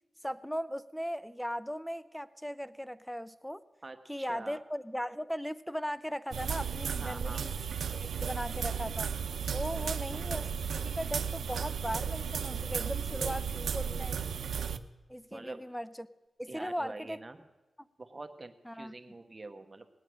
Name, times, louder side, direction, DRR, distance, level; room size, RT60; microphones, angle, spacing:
voice 1, 0.2-3.6 4.1-7.5 8.0-9.1 9.5-13.5 13.7-14.2 15.1-16.1 16.4-17.2 18.7-18.9, equal, ahead, 15 dB, 0.5 m, -38 dB
voice 2, 3.8-4.6 7.0-7.5 12.7-14.1 15.3-15.6 16.5-17.4 18.0-19.9, right 2 dB, 30° right, 7 dB, 1.2 m, -46 dB
sound 1, 6.3-14.8, right 7 dB, 85° right, 0.6 m, -34 dB
19.0 x 8.9 x 6.3 m, 1.1 s
cardioid pair, 75°, 0 cm